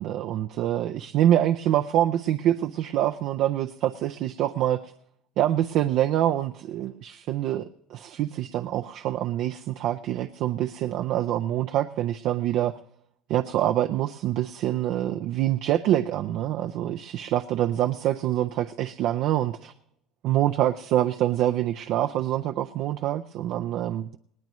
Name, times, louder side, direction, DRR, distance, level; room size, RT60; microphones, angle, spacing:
voice 1, 0.0-4.9 5.4-12.7 13.3-19.7 20.2-24.2, right 12 dB, 65° right, 7 dB, 0.5 m, -25 dB
19.5 x 17.5 x 3.1 m, 0.75 s
supercardioid pair, 115°, 0 cm